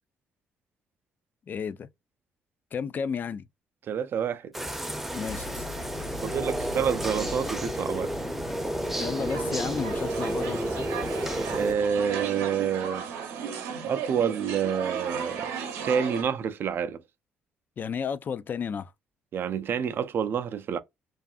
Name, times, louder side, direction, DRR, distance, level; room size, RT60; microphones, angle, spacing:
voice 1, 1.5-1.9 2.7-3.4 5.1-5.7 9.0-10.9 17.8-18.9, left 6 dB, 45° left, 0.3 m, -32 dB
voice 2, 3.9-4.5 6.2-8.1 11.5-13.1 13.8-15.5 15.8-17.0 19.3-20.8, right 7 dB, 55° right, 0.4 m, -28 dB
sound 1, 4.5-11.7, right 1 dB, 5° right, 0.6 m, -31 dB
sound 2, 5.3-12.2, left 4 dB, 85° left, 0.9 m, -43 dB
sound 3, 8.6-16.2, right 7 dB, 85° right, 0.7 m, -35 dB
2.5 x 2.3 x 2.4 m
supercardioid pair, 70°, 4 cm